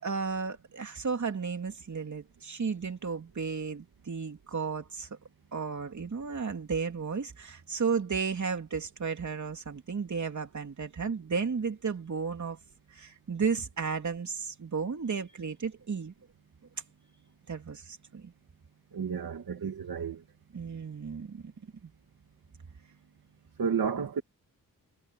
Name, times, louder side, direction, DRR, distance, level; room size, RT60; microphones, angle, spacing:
voice 1, 0.0-5.1 5.5-12.6 12.9-16.1 17.5-18.3 20.5-21.5 21.8-21.9, right 5 dB, 55° right, 3.3 m, -33 dB
voice 2, 18.9-20.2 23.6-24.2, right 6 dB, 85° right, 2.3 m, -31 dB
wide cardioid pair, 110°, 34 cm